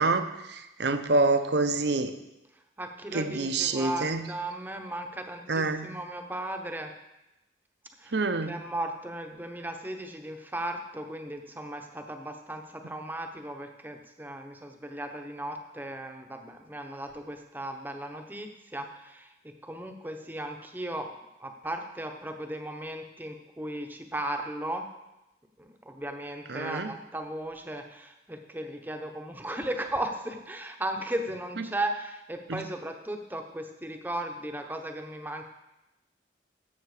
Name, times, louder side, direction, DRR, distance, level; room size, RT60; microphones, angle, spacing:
voice 1, 0.0-2.1 3.1-4.2 5.5-5.9 8.1-8.5 26.5-26.9 31.6-31.7 32.5-32.6, right 3 dB, 70° right, 9 dB, 0.8 m, -27 dB
voice 2, 2.8-6.9 8.0-8.2 8.4-21.1 21.4-24.9 25.6-35.5, right 1 dB, 10° right, 5 dB, 0.8 m, -36 dB
13.0 x 7.8 x 4.9 m, 0.95 s
head